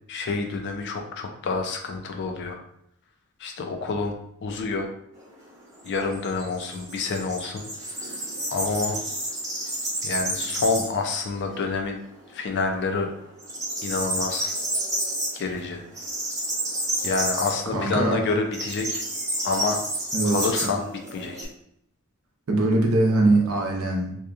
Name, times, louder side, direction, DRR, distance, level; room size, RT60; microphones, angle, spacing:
voice 1, 0.1-2.6 3.4-4.1 4.4-4.9 5.8-7.6 8.0-8.2 8.5-9.0 10.0-12.0 12.3-13.1 13.8-14.5 15.3-15.8 17.0-19.0 19.4-19.8 20.2-21.5, left 4 dB, 55° left, 4 dB, 0.4 m, -28 dB
sound 1, 5.2-11.1 11.4-11.5 11.9-12.7 13.0-21.4, right 1 dB, 15° right, 0.7 m, -30 dB
voice 2, 17.7-18.2 20.1-20.7 22.5-24.2, right 2 dB, 70° right, 1 dB, 0.6 m, -22 dB
2.8 x 2.2 x 2.4 m, 0.74 s
head